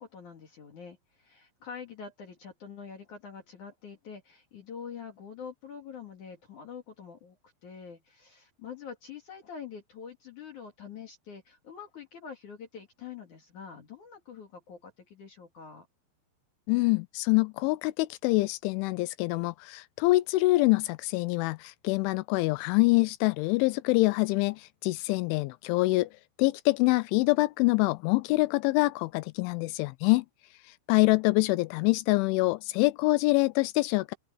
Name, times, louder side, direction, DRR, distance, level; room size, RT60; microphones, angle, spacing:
voice 1, 0.0-15.9, left 6 dB, 50° left, 3.0 m, -45 dB
voice 2, 16.7-26.1 26.4-30.3 30.9-34.1, left 22 dB, 85° left, 3.0 m, -25 dB
open air
omnidirectional pair, 5.5 m